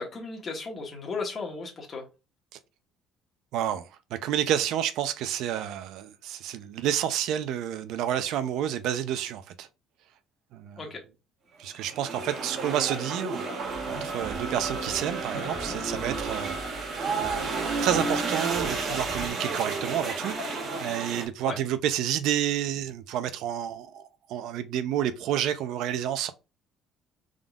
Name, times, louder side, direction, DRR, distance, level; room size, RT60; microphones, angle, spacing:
voice 1, 0.0-2.0 10.8-11.0 21.4-21.6, left 4 dB, 30° left, 1.3 m, -35 dB
voice 2, 3.5-9.7 10.5-10.8 11.6-13.4 13.9-16.6 17.2-26.3, right 10 dB, 70° right, 0.6 m, -30 dB
sound 1, 11.7-21.3, right 3 dB, 40° right, 1.4 m, -32 dB
sound 2, 13.6-19.3, right 2 dB, 15° right, 0.9 m, -45 dB
5.3 x 3.8 x 2.4 m
cardioid pair, 150°, 0 cm